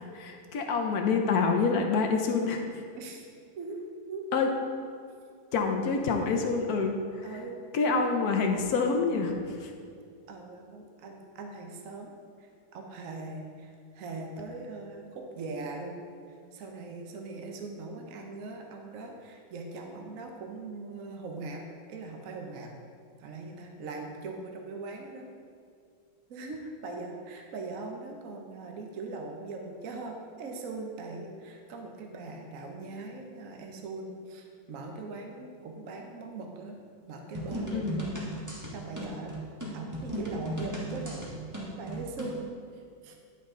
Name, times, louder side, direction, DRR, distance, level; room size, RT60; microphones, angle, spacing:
voice 1, 0.1-2.6 4.3-4.5 5.5-7.3 7.7-9.7 37.7-38.0, left 4 dB, 65° left, 3 dB, 0.9 m, -27 dB
voice 2, 4.1-4.4 7.2-7.6 7.9-8.3 10.3-12.1 12.4-22.7 23.2-25.3 26.3-36.8 37.1-37.9 38.7-39.3 39.7-41.3 41.8-42.4 42.7-43.1, right 3 dB, 55° right, 2 dB, 1.0 m, -41 dB
sound 1, 37.3-42.4, right 1 dB, 10° right, 1.0 m, -36 dB
10.5 x 5.7 x 3.7 m, 2.3 s
omnidirectional pair, 2.2 m